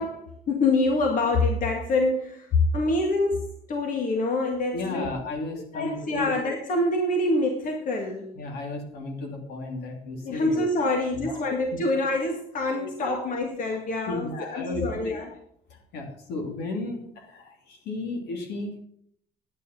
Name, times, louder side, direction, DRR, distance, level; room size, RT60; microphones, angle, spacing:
voice 1, 0.0-5.1 5.7-8.3 10.2-15.3, left 2 dB, 50° left, 2 dB, 2.0 m, -26 dB
voice 2, 4.7-6.3 8.3-11.0 11.2-11.5 12.7-13.2 14.1-15.2 15.7-18.8, left 2 dB, 75° left, 3 dB, 2.9 m, -34 dB
9.7 x 9.5 x 5.9 m, 0.67 s
cardioid pair, 110°, 17 cm